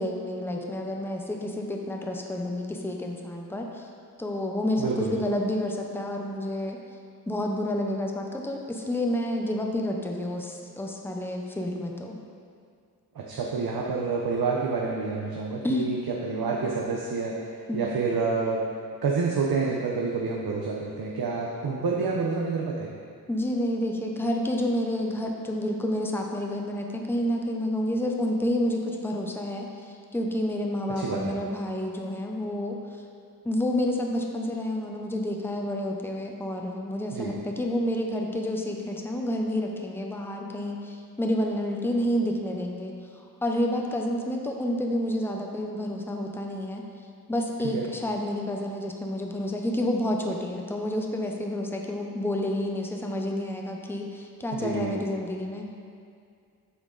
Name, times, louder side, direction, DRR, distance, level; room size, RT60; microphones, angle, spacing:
voice 1, 0.0-3.9 4.2-6.8 7.3-12.2 15.6-15.9 17.7-17.9 23.3-29.7 30.1-32.8 33.4-42.9 43.4-46.8 47.3-55.7, left 1 dB, 5° left, 1 dB, 0.6 m, -29 dB
voice 2, 4.8-5.1 13.1-16.0 16.2-17.4 17.7-18.6 19.0-22.9 31.0-31.3 37.1-37.3 47.7-47.8 54.5-55.0, right 4 dB, 70° right, -2 dB, 0.8 m, -28 dB
8.0 x 6.1 x 3.9 m, 2.3 s
wide cardioid pair, 150°, 38 cm